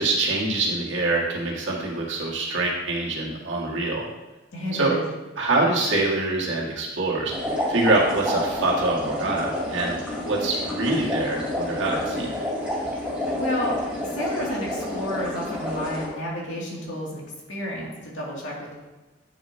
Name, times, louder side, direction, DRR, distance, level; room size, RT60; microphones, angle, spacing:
voice 1, 0.0-4.1 4.7-4.9 5.4-7.3 7.7-12.3, right 2 dB, 75° right, -3 dB, 1.8 m, -25 dB
voice 2, 4.5-5.0 13.4-13.7 14.0-17.2 17.5-18.7, equal, 75° left, -4 dB, 2.4 m, -30 dB
sound 1, 7.3-16.1, left 1 dB, 5° right, 2.2 m, -29 dB
9.3 x 6.6 x 2.8 m, 1.1 s
head